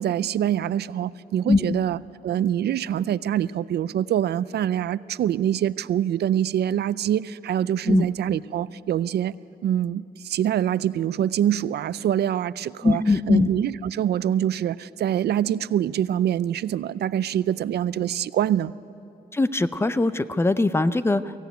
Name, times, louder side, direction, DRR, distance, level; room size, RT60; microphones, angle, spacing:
voice 1, 0.0-2.0 2.2-9.3 9.6-18.7, right 10 dB, 80° right, 17 dB, 0.5 m, -25 dB
voice 2, 1.5-1.8 7.9-8.1 12.8-13.5 19.3-21.4, left 3 dB, 15° left, 13 dB, 0.5 m, -21 dB
24.0 x 16.0 x 9.2 m, 2.8 s
wide cardioid pair, 150°, 17 cm